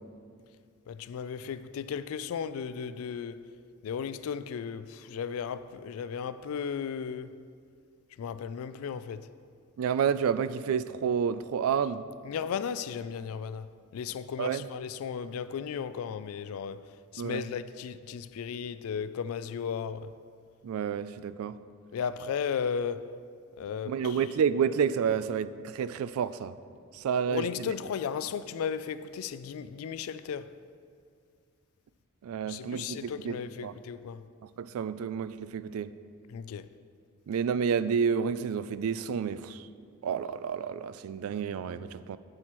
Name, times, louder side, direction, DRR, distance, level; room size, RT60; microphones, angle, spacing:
voice 1, 0.9-3.4 3.8-7.3 8.2-9.3 12.2-16.8 17.1-20.1 21.9-23.1 23.6-24.2 27.1-30.5 32.5-34.2 36.3-36.7, left 7 dB, 80° left, 0.3 m, -35 dB
voice 2, 9.8-12.0 14.4-14.7 17.2-17.5 20.6-21.6 23.9-26.5 26.9-27.7 32.2-33.4 33.6-33.7 34.6-35.9 37.3-39.6 40.0-42.2, right 7 dB, 85° right, 0.3 m, -30 dB
9.7 x 7.6 x 3.0 m
head